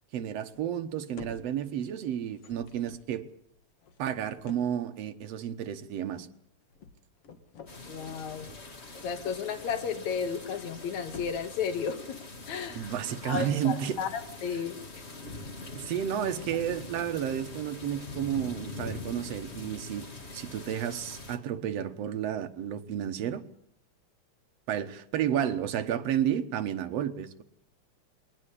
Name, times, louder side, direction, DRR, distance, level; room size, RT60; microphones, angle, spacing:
voice 1, 0.1-3.2 4.0-6.3 12.7-14.0 15.7-20.1 20.3-23.4 24.7-27.4, right 10 dB, 65° right, 2.2 m, -31 dB
sound 1, 0.5-0.9 1.2-1.9 2.2-4.9 6.2-6.4 6.7-7.8 8.9-9.9 10.2-10.7 11.0-11.7, left 5 dB, 55° left, 2.5 m, -50 dB
sound 2, 7.7-21.4, left 2 dB, 25° left, 1.7 m, -43 dB
voice 2, 7.9-8.5 8.9-12.2 12.5-12.8 13.2-15.0, left 6 dB, 75° left, 2.8 m, -33 dB
21.5 x 19.0 x 8.4 m
omnidirectional pair, 3.4 m